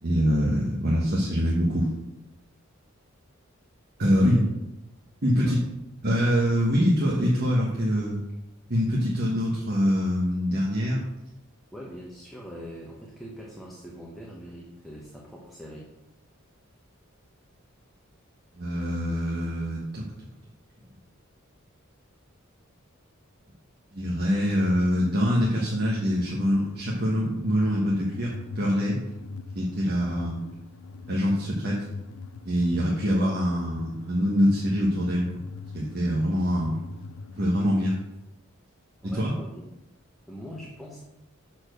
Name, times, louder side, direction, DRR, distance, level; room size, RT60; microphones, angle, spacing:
voice 1, 0.0-1.9 4.0-4.4 5.2-5.6 6.0-8.2 8.7-11.0 18.5-20.0 23.9-29.0 29.5-30.4 31.1-31.8 32.4-35.3 35.7-36.8 37.4-38.0 39.1-39.3, equal, 50° right, -4 dB, 1.3 m, -24 dB
voice 2, 4.1-4.5 5.3-5.6 11.7-15.9 30.2-30.3 39.0-39.6 40.3-41.0, equal, ahead, -4 dB, 1.1 m, -42 dB
sound 1, 25.7-37.8, left 3 dB, 70° left, 0.5 m, -42 dB
7.0 x 4.4 x 6.6 m, 0.91 s
head